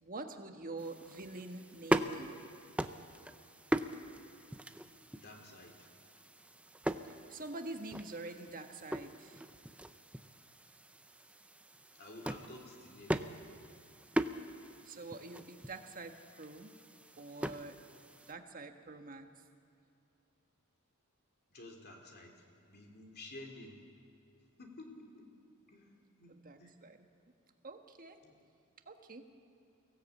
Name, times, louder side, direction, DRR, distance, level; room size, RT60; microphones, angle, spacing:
voice 1, 0.0-2.3 7.0-9.4 14.8-16.7 17.2-17.7 18.3-19.4 26.3-27.0 27.6-28.2 28.9-29.2, right 2 dB, 40° right, 6 dB, 1.4 m, -46 dB
sound 1, 0.8-18.3, right 1 dB, 5° right, 0.5 m, -40 dB
voice 2, 5.1-5.9 11.9-13.2 21.5-23.8 24.6-25.3 25.7-26.3 26.6-26.7 28.2-28.3, left 2 dB, 45° left, 2 dB, 3.0 m, -52 dB
23.0 x 17.0 x 8.4 m, 2.5 s
head